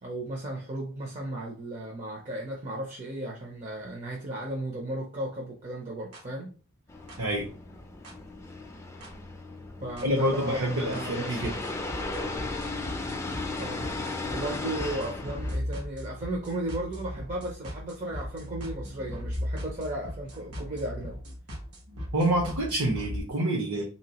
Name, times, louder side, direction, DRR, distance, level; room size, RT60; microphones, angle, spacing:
voice 1, 0.0-6.5 9.8-11.4 13.6-13.9 14.3-21.2, right 1 dB, 35° right, 0.6 m, -35 dB
sound 1, 6.1-6.2 7.1-7.2 8.0-8.1 9.0-9.1 10.0-10.1 10.9-11.0 11.4-23.2, equal, 85° right, 1.3 m, -38 dB
sound 2, 6.9-15.6, left 2 dB, 15° left, 0.4 m, -36 dB
voice 2, 7.2-7.5 10.0-11.6 22.1-23.8, right 1 dB, 70° right, 0.8 m, -27 dB
3.5 x 2.8 x 2.9 m
head